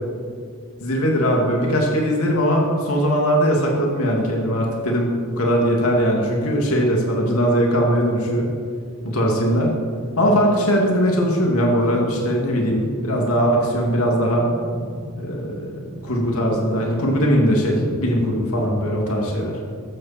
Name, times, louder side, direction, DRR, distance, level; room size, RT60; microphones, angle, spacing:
voice 1, 0.8-8.5 9.0-9.7 10.2-14.5 15.2-19.6, equal, 80° left, -1 dB, 2.5 m, -20 dB
sound 1, 11.1-19.0, right 1 dB, 45° right, 1.7 m, -36 dB
15.0 x 13.5 x 4.4 m, 2.2 s
head